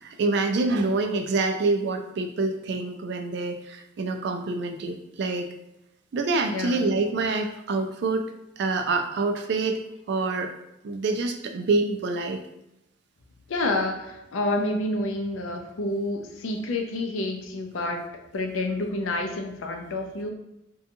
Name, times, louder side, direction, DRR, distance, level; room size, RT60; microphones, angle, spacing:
voice 1, 0.0-5.5 6.1-8.2 8.6-9.8 10.1-10.5 10.8-12.4, right 3 dB, 55° right, 5 dB, 0.3 m, -26 dB
voice 2, 6.5-7.0 13.5-18.0 18.3-20.3, left 2 dB, 80° left, 3 dB, 0.4 m, -29 dB
2.8 x 2.2 x 2.6 m, 0.85 s
head